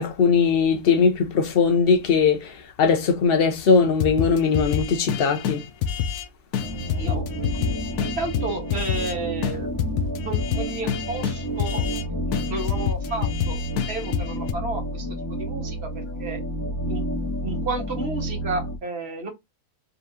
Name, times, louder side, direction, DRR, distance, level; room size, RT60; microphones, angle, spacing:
voice 1, 0.0-2.5 2.8-5.6, left 5 dB, 45° left, 0.9 m, -20 dB
sound 1, 4.0-6.2 6.5-9.1 9.4-9.5 9.8-12.0 12.3-14.5, left 8 dB, 90° left, 1.2 m, -27 dB
sound 2, 6.6-18.8, right 1 dB, 15° right, 0.8 m, -30 dB
voice 2, 7.9-9.9 10.2-11.8 12.3-13.6 13.9-15.1 15.4-16.4 16.9-17.0 17.4-19.3, right 2 dB, 45° right, 1.8 m, -32 dB
3.9 x 3.5 x 2.8 m
omnidirectional pair, 1.6 m